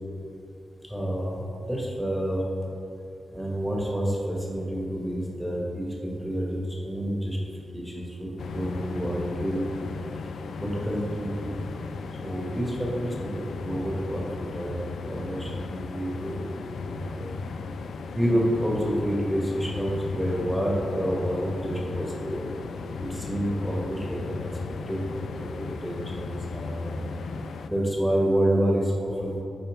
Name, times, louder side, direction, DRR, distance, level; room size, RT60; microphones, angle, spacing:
voice 1, 0.9-1.4 1.7-2.4 3.3-6.6 6.8-7.4 7.7-9.6 10.5-11.6 12.2-16.4 16.9-17.3 18.1-22.4 23.0-24.5 24.9-26.9 27.7-29.4, equal, ahead, -3 dB, 1.4 m, -28 dB
sound 1, 8.4-27.7, left 4 dB, 85° left, 0.3 m, -36 dB
8.8 x 4.3 x 3.6 m, 2.8 s
cardioid pair, 90°, 0 cm